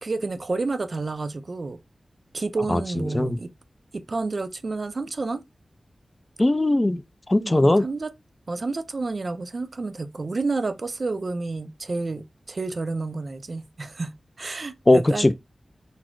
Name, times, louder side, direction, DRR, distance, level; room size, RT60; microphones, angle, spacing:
voice 1, 0.0-1.8 2.3-3.5 3.9-5.4 7.4-8.1 8.5-15.3, right 3 dB, 50° right, 0.4 m, -30 dB
voice 2, 2.7-3.4 6.4-7.0 7.3-7.8 14.9-15.3, left 1 dB, 20° left, 0.3 m, -19 dB
4.0 x 2.0 x 4.5 m
wide cardioid pair, 110°, 0 cm